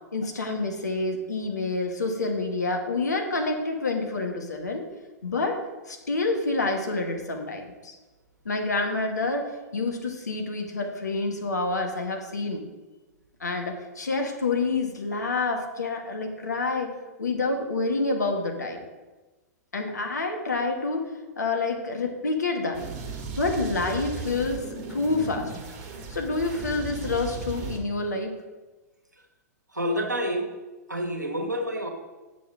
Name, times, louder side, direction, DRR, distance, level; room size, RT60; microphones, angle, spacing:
voice 1, 0.1-4.9 5.2-8.0 8.4-12.6 13.4-16.9 17.2-18.8 19.7-21.0 21.4-22.8 23.4-25.5 26.1-28.3, left 3 dB, 75° left, 3 dB, 1.4 m, -28 dB
sound 1, 22.7-27.8, right 4 dB, 40° right, 1.4 m, -36 dB
voice 2, 29.7-30.5 30.9-31.9, equal, 85° right, 3 dB, 1.2 m, -28 dB
8.3 x 6.3 x 3.6 m, 1.2 s
figure-of-eight pair, 105°, 9 cm